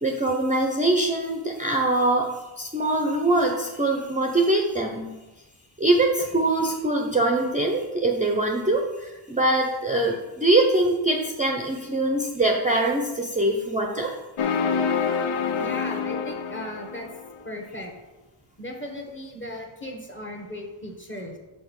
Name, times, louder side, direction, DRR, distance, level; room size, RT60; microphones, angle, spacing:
voice 1, 0.0-5.1 5.8-14.1, right 2 dB, 15° right, 1 dB, 0.6 m, -23 dB
sound 1, 14.4-17.4, left 6 dB, 90° left, 0.7 m, -26 dB
voice 2, 15.6-17.1 17.4-17.9 18.6-21.4, left 1 dB, 25° left, 1 dB, 1.3 m, -37 dB
5.9 x 4.7 x 6.2 m, 1.1 s
wide cardioid pair, 150°, 48 cm